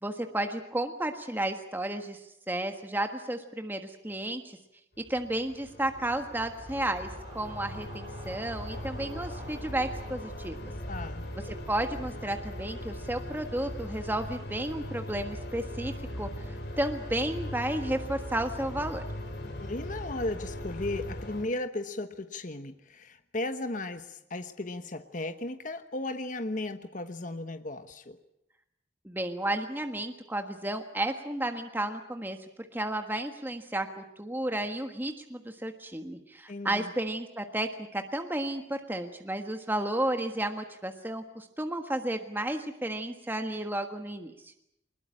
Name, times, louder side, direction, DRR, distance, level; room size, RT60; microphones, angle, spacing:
voice 1, 0.0-2.2 2.5-4.6 5.1-7.1 7.3-10.6 11.4-19.0 29.0-44.5, right 1 dB, 10° right, 6 dB, 1.5 m, -32 dB
sound 1, 5.0-21.4, left 1 dB, 60° left, 3.9 m, -39 dB
sound 2, 5.1-11.2, right 2 dB, 35° right, 4.9 m, -51 dB
voice 2, 10.9-11.2 19.4-28.2 36.5-36.9, left 2 dB, 45° left, 9 dB, 1.1 m, -36 dB
23.0 x 21.0 x 8.7 m, 0.79 s
head